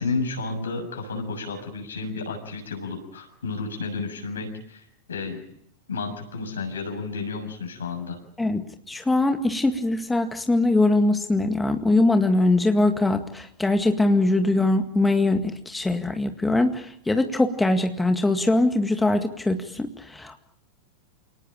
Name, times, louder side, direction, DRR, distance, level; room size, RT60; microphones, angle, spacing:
voice 1, 0.0-4.8 5.1-5.4 5.9-8.2, left 4 dB, 70° left, 4 dB, 6.8 m, -31 dB
voice 2, 8.4-20.4, left 2 dB, 5° left, 6 dB, 2.0 m, -22 dB
29.0 x 19.0 x 8.9 m, 0.74 s
figure-of-eight pair, 90°, 0 cm